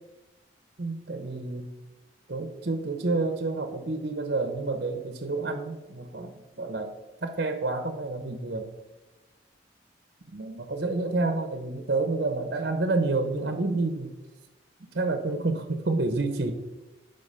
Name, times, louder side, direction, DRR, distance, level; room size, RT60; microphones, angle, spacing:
voice 1, 0.8-1.7 2.3-6.9 7.2-8.7 10.3-14.1 14.9-16.5, right 3 dB, 55° right, 7 dB, 0.8 m, -29 dB
10.5 x 3.9 x 5.4 m, 1.1 s
head